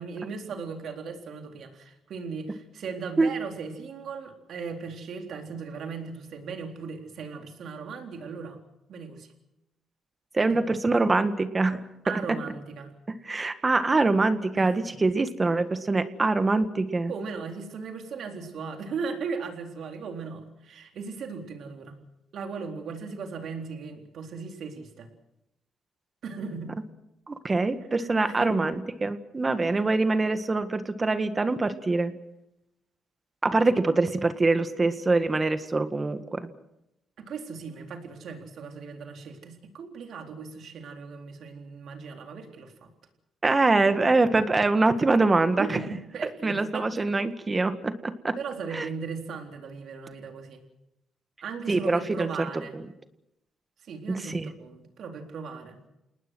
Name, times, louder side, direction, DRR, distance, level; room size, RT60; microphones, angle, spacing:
voice 1, 0.0-8.6 8.9-9.3 10.5-10.7 12.0-12.9 14.5-14.9 17.1-22.0 22.3-25.1 26.2-26.7 28.0-28.7 37.2-42.9 45.6-47.1 48.4-50.6 51.4-52.8 53.8-55.8, right 5 dB, 65° right, 4 dB, 3.9 m, -37 dB
voice 2, 10.3-11.8 13.2-17.1 27.3-32.1 33.4-36.5 43.4-45.8 46.2-48.4 48.7-48.9 51.7-52.3 54.1-54.5, right 3 dB, 25° right, 10 dB, 1.8 m, -24 dB
28.5 x 19.5 x 6.3 m, 0.85 s
cardioid pair, 90°, 0 cm